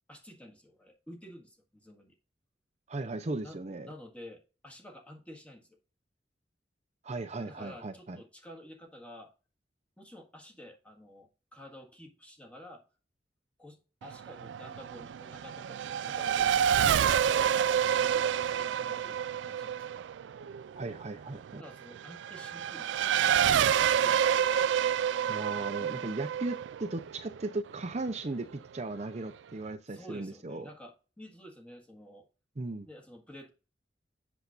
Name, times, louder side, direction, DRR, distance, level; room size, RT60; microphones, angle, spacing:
voice 1, 0.1-2.2 3.4-5.8 7.4-9.3 10.0-12.8 13.6-17.6 17.9-19.9 21.6-24.3 29.9-32.3 32.8-33.5, equal, 10° left, 1.7 m, -50 dB
voice 2, 2.9-3.9 7.0-8.2 20.8-21.6 25.3-30.7 32.6-32.9, right 2 dB, 40° right, 0.7 m, -37 dB
Race car auto racing / Accelerating revving vroom, 14.0-28.1, right 9 dB, 90° right, 0.3 m, -28 dB
8.0 x 7.0 x 2.5 m
head